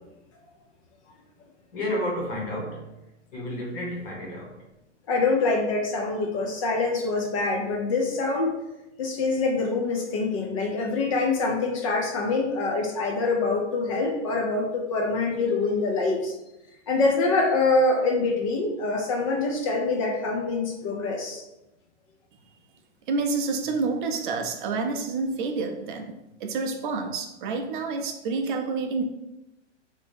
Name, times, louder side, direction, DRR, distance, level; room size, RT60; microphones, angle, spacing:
voice 1, 1.7-2.9 3.3-4.7, left 1 dB, 50° left, -2 dB, 1.4 m, -31 dB
voice 2, 5.1-8.6 9.0-16.3 16.9-21.4, left 3 dB, 30° left, 1 dB, 0.4 m, -25 dB
voice 3, 23.1-26.1 26.4-29.0, right 4 dB, 45° right, 4 dB, 0.5 m, -28 dB
2.8 x 2.7 x 3.4 m, 0.94 s
hypercardioid pair, 135°, 35 cm